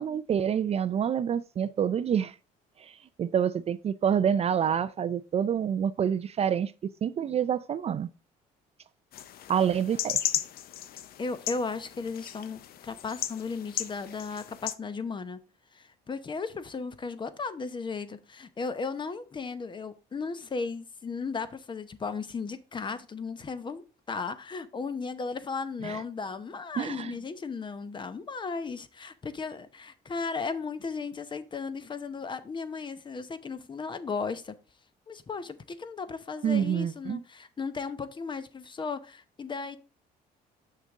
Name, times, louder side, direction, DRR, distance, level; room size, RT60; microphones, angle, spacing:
voice 1, 0.0-2.4 2.8-8.1 9.5-10.2 25.8-26.0 26.8-27.2 36.4-37.2, right 8 dB, 40° right, 0.4 m, -27 dB
sound 1, 9.1-14.7, left 11 dB, 65° left, 0.6 m, -35 dB
voice 2, 11.2-15.4 15.7-34.5 35.1-39.8, left 4 dB, 30° left, 0.8 m, -35 dB
6.5 x 6.4 x 3.6 m
cardioid pair, 110°, 17 cm